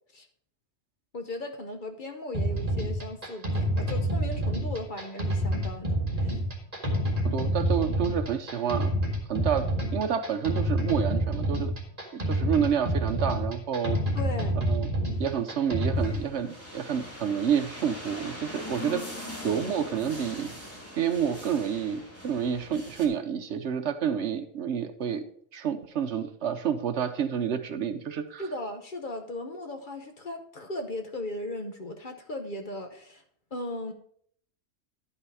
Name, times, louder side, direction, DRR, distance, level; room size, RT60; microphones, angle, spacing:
voice 1, 1.1-6.4 14.1-14.6 28.4-33.2 33.5-33.9, left 1 dB, 45° left, 6 dB, 1.0 m, -37 dB
sound 1, 2.3-16.3, equal, 30° right, 1.9 m, -28 dB
voice 2, 7.2-8.9 9.3-11.7 12.3-14.0 14.6-14.9 15.2-19.0 19.4-20.5 20.9-25.2 25.5-28.4, right 8 dB, 65° right, 9 dB, 1.0 m, -29 dB
sound 2, 15.2-23.1, left 1 dB, 10° left, 1.8 m, -42 dB
11.5 x 5.7 x 4.8 m, 0.63 s
omnidirectional pair, 1.3 m